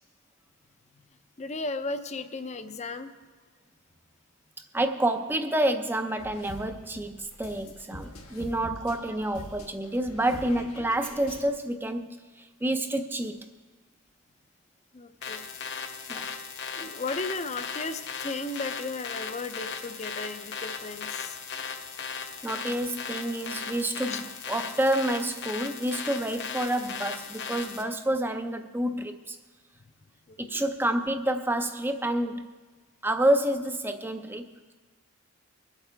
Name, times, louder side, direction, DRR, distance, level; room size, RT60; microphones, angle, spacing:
voice 1, 1.4-3.1 14.9-15.6 16.1-16.3 16.7-21.4 24.1-24.2 30.3-30.6, left 3 dB, 30° left, 9 dB, 0.6 m, -35 dB
voice 2, 4.7-13.5 16.1-16.3 22.4-29.4 30.4-32.5 33.0-34.7, right 1 dB, 10° right, 8 dB, 0.5 m, -28 dB
sound 1, 6.2-11.5, left 1 dB, 85° left, 1.5 m, -44 dB
sound 2, 15.2-27.8, left 6 dB, 50° left, 0.9 m, -37 dB
23.5 x 8.3 x 3.4 m, 1.3 s
head